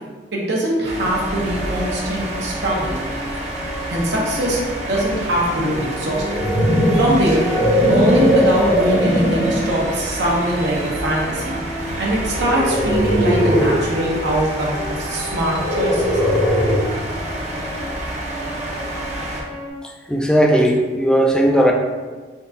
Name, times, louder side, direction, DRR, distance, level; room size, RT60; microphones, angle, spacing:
voice 1, 0.3-3.0 3.9-4.6 4.8-6.2 7.0-7.4 7.9-11.6 12.0-16.0, right 1 dB, 70° right, -4 dB, 0.8 m, -22 dB
sound 1, 0.8-19.4, right 1 dB, 40° right, 0.6 m, -29 dB
sound 2, 1.0-19.7, equal, 50° left, 1.0 m, -34 dB
sound 3, 6.0-9.7 10.3-10.6 12.3-13.9 15.5-17.0, equal, 80° left, 1.2 m, -19 dB
voice 2, 20.1-21.7, equal, 5° left, 1 dB, 0.3 m, -16 dB
3.7 x 2.3 x 3.8 m, 1.3 s
head